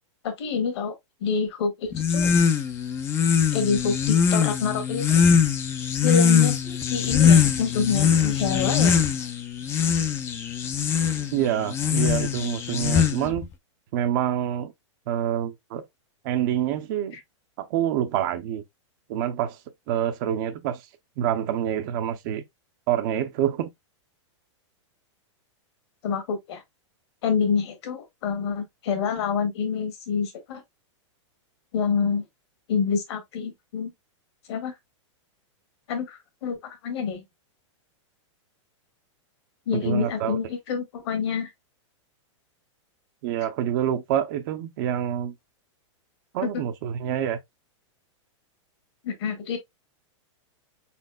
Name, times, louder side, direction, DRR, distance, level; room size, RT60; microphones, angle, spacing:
voice 1, 0.2-2.3 3.5-5.2 6.0-9.0 26.0-26.6 27.2-30.6 31.7-32.2 32.7-33.9 34.5-34.7 35.9-37.2 39.7-41.5 46.4-46.5 49.0-49.6, left 6 dB, 60° left, 1.6 m, -27 dB
sound 1, 1.9-13.4, left 7 dB, 15° left, 0.4 m, -22 dB
voice 2, 11.3-13.5 13.9-14.7 15.1-15.8 16.2-17.2 17.6-18.6 19.1-19.6 19.9-20.8 21.2-22.4 22.9-23.7 39.7-40.4 43.2-45.3 46.3-47.4, right 10 dB, 40° right, 0.6 m, -26 dB
4.6 x 4.2 x 2.2 m
supercardioid pair, 160°, 16 cm